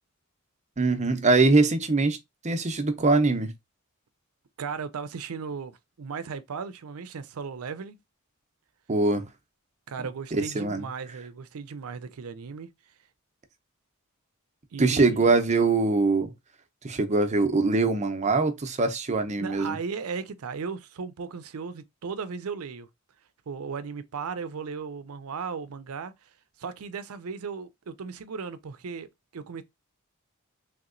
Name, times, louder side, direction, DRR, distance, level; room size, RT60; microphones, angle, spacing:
voice 1, 0.8-2.2 2.4-3.5 8.9-9.2 10.3-10.9 14.8-16.3 16.8-19.8, right 3 dB, 35° right, 0.6 m, -23 dB
voice 2, 4.6-8.0 9.9-12.7 14.7-15.3 19.4-22.9 23.5-26.1 26.6-29.6, right 5 dB, 80° right, 0.5 m, -36 dB
3.5 x 2.9 x 2.5 m
head